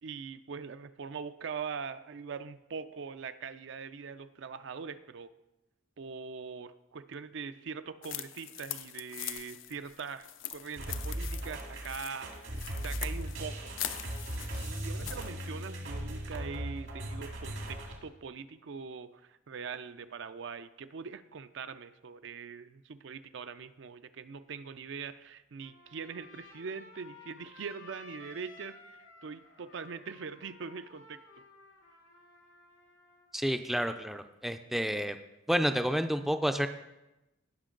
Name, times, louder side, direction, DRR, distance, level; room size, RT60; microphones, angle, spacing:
voice 1, 0.0-5.3 6.0-13.7 14.6-31.2, right 5 dB, 65° right, 12 dB, 0.5 m, -42 dB
sound 1, 8.0-15.3, left 12 dB, 70° left, 0.5 m, -42 dB
sound 2, 10.8-18.0, right 1 dB, 80° right, 2.2 m, -38 dB
Trumpet, 25.6-33.3, left 3 dB, 85° left, 2.8 m, -55 dB
voice 2, 33.3-35.2 35.5-36.7, equal, ahead, 8 dB, 0.4 m, -30 dB
17.5 x 5.9 x 3.8 m, 0.96 s
head